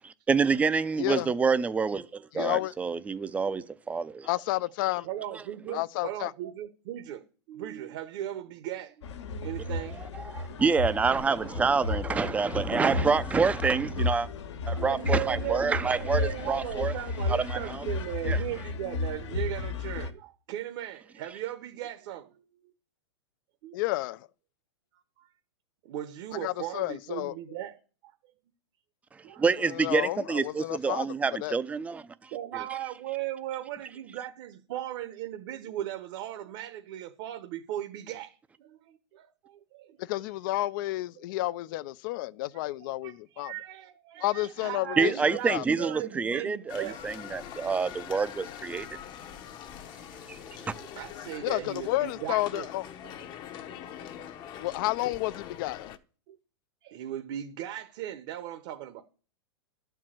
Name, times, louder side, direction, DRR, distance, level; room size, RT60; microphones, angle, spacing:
voice 1, 0.0-4.3 10.2-14.3 14.7-16.9 17.3-17.8 18.3-18.4 29.4-32.0 45.0-48.9 50.3-50.7, right 5 dB, 10° right, 0.5 m, -27 dB
voice 2, 1.0-1.3 2.3-2.7 4.2-5.1 5.7-6.3 23.7-24.2 26.4-27.3 29.6-31.6 40.0-43.5 44.2-45.6 51.4-52.9 54.5-55.9, left 17 dB, 50° left, 0.5 m, -31 dB
voice 3, 5.0-9.0 9.4-10.0 10.4-10.6 14.7-22.5 23.6-23.8 25.2-25.3 25.8-28.1 29.2-29.4 32.3-40.0 41.2-41.3 42.8-47.0 50.7-52.7 53.0-53.1 53.6-54.3 56.3-56.4 56.8-59.0, right 12 dB, 50° right, 1.0 m, -38 dB
sound 1, 9.0-20.1, left 3 dB, 80° left, 1.4 m, -33 dB
sound 2, 46.7-56.0, left 10 dB, 30° left, 0.8 m, -43 dB
11.5 x 4.6 x 7.5 m
hypercardioid pair, 140°, 15 cm